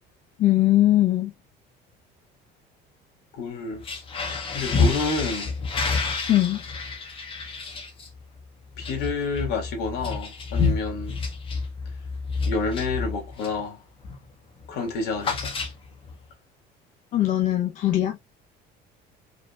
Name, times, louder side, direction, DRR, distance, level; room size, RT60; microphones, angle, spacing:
voice 1, 0.4-1.3 6.3-6.6 17.1-18.2, left 14 dB, 45° left, 0.8 m, -20 dB
voice 2, 3.3-3.8 4.5-5.5 8.8-11.2 12.5-13.8 14.7-15.6, left 3 dB, 65° left, 2.8 m, -29 dB
sound 1, 3.7-13.7 14.0-14.3 14.6-16.1, left 4 dB, 30° left, 1.5 m, -29 dB
5.3 x 4.1 x 2.4 m
cardioid pair, 170°, 18 cm